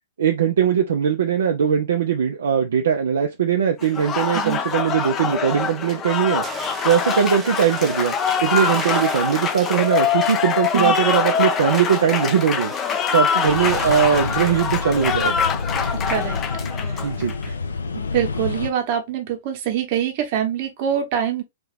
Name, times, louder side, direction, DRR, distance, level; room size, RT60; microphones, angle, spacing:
voice 1, 0.2-6.4 6.8-8.1 8.4-12.7 13.1-15.5 17.0-17.5, right 8 dB, 60° right, 0.6 m, -20 dB
Applause, 3.8-17.5, left 6 dB, 25° left, 0.5 m, -24 dB
sound 1, 6.4-15.4, right 4 dB, 15° right, 0.7 m, -38 dB
sound 2, 13.5-18.7, left 4 dB, 75° left, 0.6 m, -28 dB
voice 2, 15.9-16.4 16.8-17.1 17.9-21.4, right 9 dB, 40° right, 1.1 m, -25 dB
3.4 x 2.8 x 3.3 m
figure-of-eight pair, 110°, 0 cm